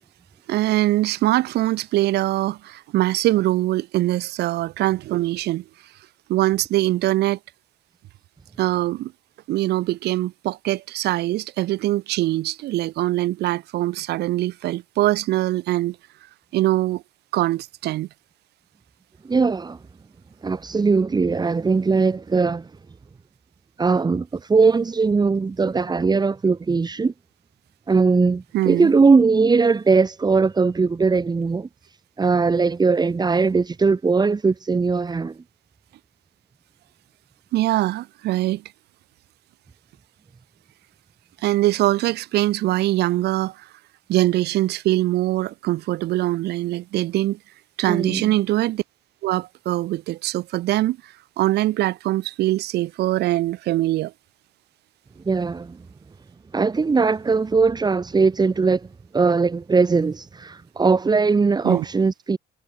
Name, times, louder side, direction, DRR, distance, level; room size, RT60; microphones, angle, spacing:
voice 1, 0.5-5.6 6.3-7.4 8.6-9.1 9.5-16.0 16.5-17.0 17.3-18.1 28.5-28.9 37.5-38.6 41.4-43.7 44.1-47.4 47.8-48.8 49.2-51.0 51.4-54.1 61.6-61.8, right 16 dB, 75° right, 2.8 m, -22 dB
voice 2, 19.2-19.8 20.4-22.7 23.8-27.1 27.9-31.7 32.2-35.3 47.9-48.3 55.3-55.8 56.5-58.9 59.1-62.4, right 4 dB, 25° right, 3.9 m, -20 dB
cardioid pair, 110°, 17 cm